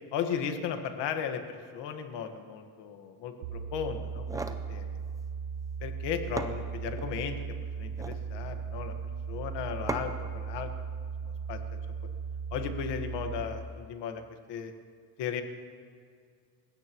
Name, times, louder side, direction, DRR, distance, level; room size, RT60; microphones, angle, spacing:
voice 1, 0.1-4.4 4.7-5.0 5.8-7.3 7.8-8.9 9.3-10.7 11.2-11.6 12.5-14.2 14.5-14.7 15.2-15.4, left 7 dB, 65° left, 6 dB, 1.6 m, -35 dB
sound 1, 3.4-13.4, right 6 dB, 75° right, 1.0 m, -37 dB
sound 2, 4.1-4.7 5.9-6.0 6.4-7.1 7.8-8.3 9.9-10.3, right 2 dB, 10° right, 0.4 m, -37 dB
29.0 x 16.0 x 3.1 m, 2.1 s
cardioid pair, 165°, 46 cm